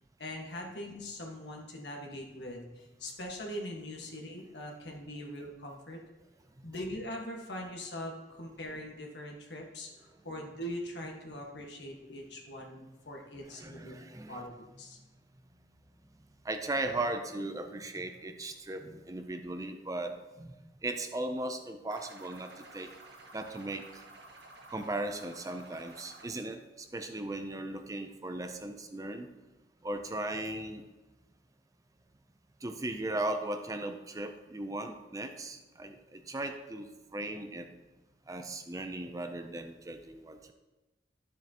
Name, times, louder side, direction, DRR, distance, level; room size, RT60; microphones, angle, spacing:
voice 1, 0.2-6.0 6.6-14.0 14.3-15.0, left 1 dB, 75° left, 0 dB, 1.6 m, -42 dB
voice 2, 13.5-14.4 16.4-20.5 20.8-22.9 23.3-24.0 24.7-29.3 29.8-30.8 32.6-37.7 38.3-40.5, right 2 dB, 20° right, 6 dB, 0.5 m, -37 dB
sound 1, 21.9-26.3, right 2 dB, 75° right, 1.3 m, -52 dB
12.0 x 7.3 x 2.9 m, 1.1 s
head